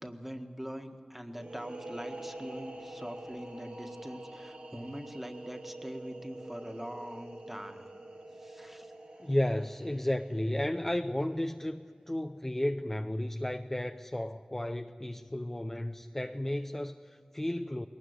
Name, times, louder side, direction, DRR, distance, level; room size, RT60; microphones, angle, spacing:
voice 1, 0.0-7.8 8.3-8.9, equal, 10° right, 5 dB, 1.7 m, -43 dB
sound 1, 1.3-10.9, right 1 dB, 85° right, 3.5 m, -46 dB
voice 2, 9.2-11.8 12.1-17.9, left 1 dB, 15° left, 6 dB, 0.6 m, -33 dB
22.0 x 19.0 x 9.6 m, 2.2 s
wide cardioid pair, 70°, 2 cm